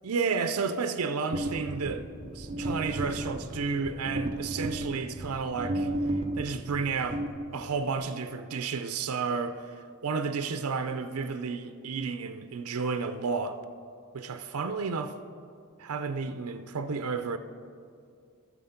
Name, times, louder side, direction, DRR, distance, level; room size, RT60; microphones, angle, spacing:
voice 1, 0.0-2.0 2.3-5.9 6.3-7.2 7.5-9.6 10.0-13.6 14.1-15.1 15.8-17.4, right 5 dB, 85° right, 0.5 m, -31 dB
sound 1, 1.3-7.9, right 1 dB, 30° right, 0.6 m, -34 dB
12.5 x 7.2 x 5.8 m
head